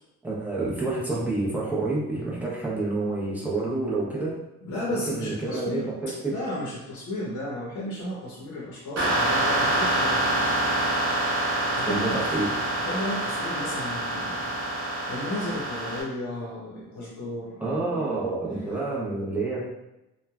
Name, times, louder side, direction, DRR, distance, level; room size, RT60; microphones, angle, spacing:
voice 1, 0.2-4.4 4.9-6.3 11.9-12.5 17.6-19.6, right 3 dB, 5° right, -6 dB, 0.6 m, -28 dB
voice 2, 4.6-10.3 11.7-12.2 12.8-14.8 15.1-17.7 18.1-18.2 18.7-18.8, left 1 dB, 70° left, -6 dB, 0.8 m, -34 dB
sound 1, 9.0-16.0, right 1 dB, 60° right, 0.9 m, -26 dB
3.1 x 2.2 x 2.3 m, 0.94 s
wide cardioid pair, 165°, 31 cm